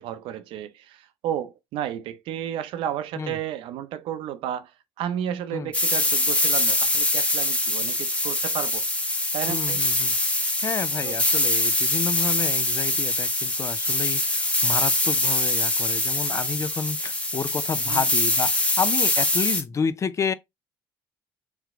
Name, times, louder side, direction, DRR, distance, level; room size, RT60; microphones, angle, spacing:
voice 1, 0.0-4.7 5.0-8.8 9.3-9.8 11.0-11.2 17.8-18.1, right 10 dB, 80° right, 0.6 m, -32 dB
sound 1, 5.7-19.6, left 1 dB, 15° left, 1.0 m, -23 dB
voice 2, 9.5-10.2 10.6-20.3, left 6 dB, 35° left, 0.4 m, -30 dB
3.4 x 3.1 x 3.6 m
cardioid pair, 95°, 9 cm